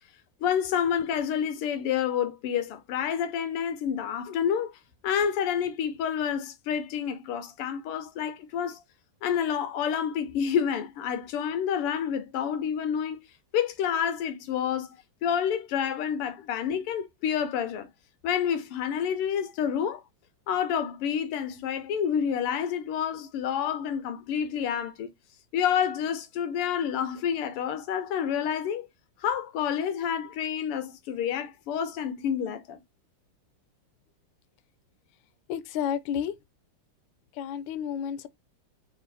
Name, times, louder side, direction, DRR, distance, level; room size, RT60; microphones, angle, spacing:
voice 1, 0.4-4.7 5.0-8.8 9.2-13.3 13.5-14.9 15.2-17.9 18.2-20.0 20.5-25.1 25.5-28.9 29.2-32.8, left 8 dB, 90° left, 1.8 m, -28 dB
voice 2, 35.5-36.3 37.4-38.3, left 9 dB, 70° left, 1.2 m, -31 dB
4.2 x 2.6 x 4.0 m
omnidirectional pair, 2.4 m